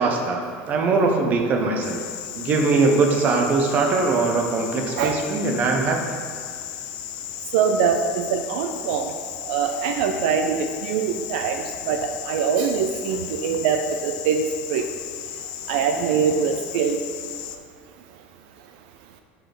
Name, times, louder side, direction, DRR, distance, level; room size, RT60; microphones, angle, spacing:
voice 1, 0.0-2.1 2.3-6.0, right 3 dB, 35° right, 2 dB, 0.8 m, -21 dB
sound 1, 1.8-17.6, left 11 dB, 85° left, 0.4 m, -35 dB
voice 2, 7.5-9.1 9.5-14.4 14.7-14.8 15.7-17.0, right 6 dB, 85° right, 6 dB, 0.5 m, -23 dB
4.9 x 4.7 x 5.9 m, 2.1 s
cardioid pair, 160°, 5 cm